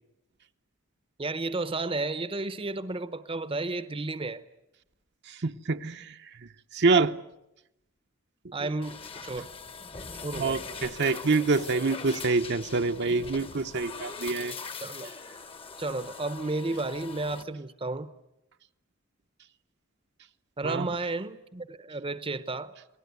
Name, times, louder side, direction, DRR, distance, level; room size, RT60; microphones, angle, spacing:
voice 1, 1.2-4.4 8.5-9.5 10.2-10.6 14.8-15.1 15.8-18.1 20.6-22.7, right 2 dB, 25° right, 0.9 m, -32 dB
voice 2, 5.3-7.2 10.3-14.5 20.6-20.9, right 3 dB, 55° right, 0.9 m, -26 dB
sound 1, 8.8-17.4, left 4 dB, 25° left, 1.1 m, -42 dB
28.0 x 19.0 x 9.5 m
head